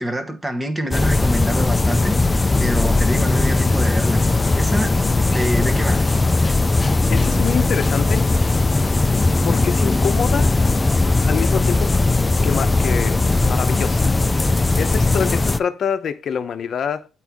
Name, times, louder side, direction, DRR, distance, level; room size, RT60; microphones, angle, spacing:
voice 1, 0.0-4.2 4.5-5.0 5.3-6.1, equal, 15° right, 1.1 m, -26 dB
sound 1, 0.9-15.6, left 2 dB, 20° left, 0.4 m, -18 dB
voice 2, 7.1-8.2 9.4-10.5 11.2-11.9 12.4-17.1, left 7 dB, 55° left, 0.7 m, -26 dB
8.3 x 4.6 x 3.5 m
cardioid pair, 90°, 0 cm